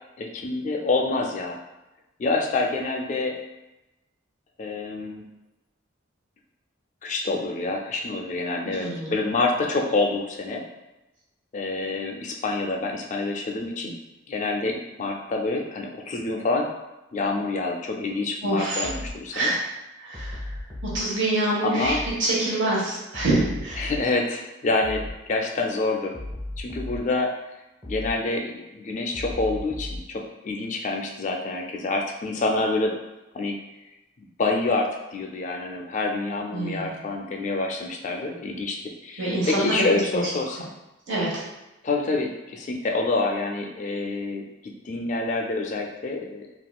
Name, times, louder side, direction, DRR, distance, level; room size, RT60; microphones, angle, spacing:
voice 1, 0.2-1.6 2.2-3.4 4.6-5.2 7.0-10.6 11.5-14.0 14.3-16.7 17.1-19.5 21.6-22.0 23.8-26.1 26.6-27.3 27.9-32.9 33.3-33.6 34.2-40.7 41.8-46.4, left 3 dB, 35° left, 2 dB, 0.3 m, -27 dB
voice 2, 8.8-9.1 18.4-18.9 19.3-19.6 20.0-20.4 20.9-21.9 22.2-23.9 36.5-36.9 39.2-39.7 41.1-41.4, right 2 dB, 70° right, -6 dB, 1.1 m, -25 dB
sound 1, 18.8-19.2 20.1-21.0 21.8-22.2 23.1-24.0 24.8-25.2 26.1-27.0 27.8-28.2 29.1-30.0, left 1 dB, 25° right, 0.8 m, -35 dB
3.6 x 2.3 x 2.2 m, 0.99 s
head